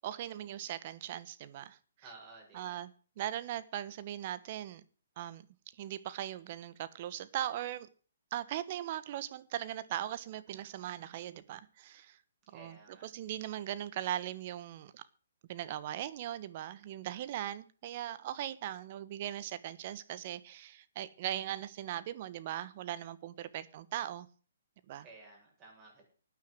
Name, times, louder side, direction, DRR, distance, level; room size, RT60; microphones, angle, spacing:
voice 1, 0.0-1.8 2.5-2.9 3.2-4.8 5.2-5.4 5.8-7.9 8.3-12.2 12.5-12.8 13.0-15.0 15.5-24.3 24.9-25.0, right 12 dB, 45° right, 1.2 m, -39 dB
voice 2, 2.0-2.8 12.5-13.1 25.0-26.0, right 3 dB, 25° right, 7.6 m, -54 dB
12.5 x 9.6 x 8.0 m
hypercardioid pair, 135°, 0 cm